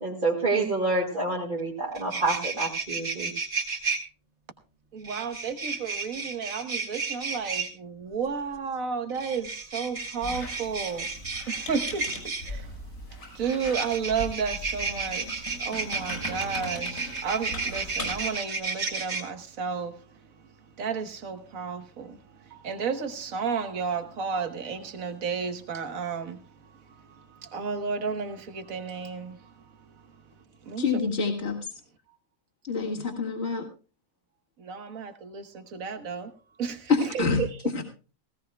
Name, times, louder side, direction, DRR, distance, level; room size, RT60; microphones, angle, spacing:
voice 1, 0.0-3.3, right 3 dB, 35° right, 2.2 m, -27 dB
sound 1, 1.6-1.7 1.9-4.0 5.0-7.7 9.1-12.5 13.4-19.2, right 4 dB, 55° right, 3.0 m, -32 dB
voice 2, 4.9-11.1 11.5-12.7 13.3-20.0 20.8-29.5 30.7-30.9 34.6-36.3 36.6-37.5, right 6 dB, 75° right, 1.6 m, -32 dB
Squeak, 10.2-18.3, left 1 dB, 85° left, 5.7 m, -39 dB
voice 3, 30.8-31.6 32.7-33.7 36.9-37.8, left 4 dB, 50° left, 2.1 m, -26 dB
18.0 x 16.5 x 2.2 m
omnidirectional pair, 1.4 m